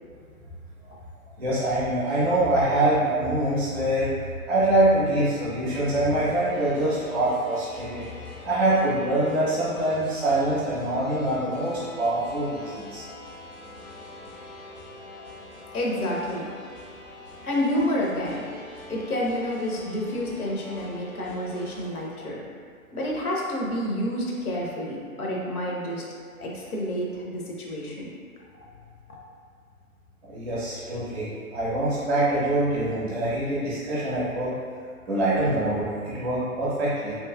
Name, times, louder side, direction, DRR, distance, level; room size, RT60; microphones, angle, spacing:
voice 1, 1.4-8.1 8.4-13.0 15.2-15.3 30.3-34.6 35.1-37.2, right 1 dB, 10° right, -9 dB, 0.6 m, -24 dB
sound 1, 5.6-21.9, left 1 dB, 35° left, 0.4 m, -45 dB
voice 2, 15.7-16.5 17.4-18.5 18.9-22.4 22.9-26.1 26.4-28.1 28.6-28.7, left 1 dB, 85° left, -3 dB, 0.9 m, -29 dB
3.0 x 2.6 x 2.3 m, 2.2 s
hypercardioid pair, 145°, 43 cm